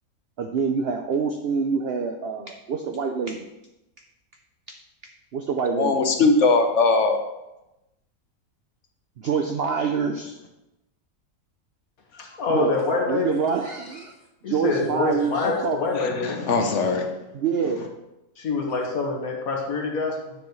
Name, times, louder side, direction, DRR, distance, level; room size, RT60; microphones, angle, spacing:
voice 1, 0.4-3.5 4.7-4.8 5.3-6.0 9.2-10.4 12.5-12.8 13.1-14.1 14.5-15.8 17.3-17.8, right 6 dB, 60° right, 4 dB, 0.6 m, -26 dB
voice 2, 5.7-7.2 15.4-15.5 16.0-17.1, left 3 dB, 60° left, 5 dB, 1.2 m, -21 dB
voice 3, 12.1-13.4 14.4-16.4 18.4-20.4, left 3 dB, 75° left, 0 dB, 1.9 m, -26 dB
9.3 x 7.1 x 3.1 m, 0.95 s
omnidirectional pair, 1.5 m